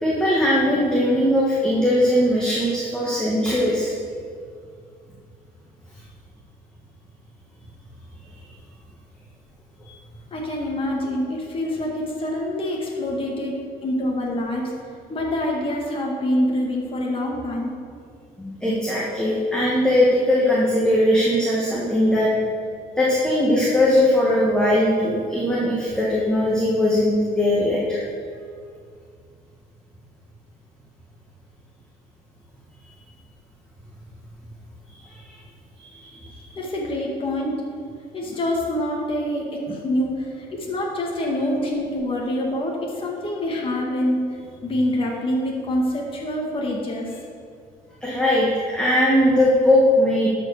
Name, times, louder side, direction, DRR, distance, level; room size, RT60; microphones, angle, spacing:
voice 1, 0.0-3.9 9.8-9.9 18.4-22.3 23.0-28.0 35.1-35.4 35.8-36.5 48.0-50.3, left 1 dB, 5° left, -6 dB, 1.8 m, -20 dB
voice 2, 10.3-17.7 36.6-37.6 38.1-47.1, left 1 dB, 30° left, -2 dB, 1.9 m, -26 dB
12.5 x 5.0 x 6.5 m, 2.2 s
cardioid pair, 110°, 17 cm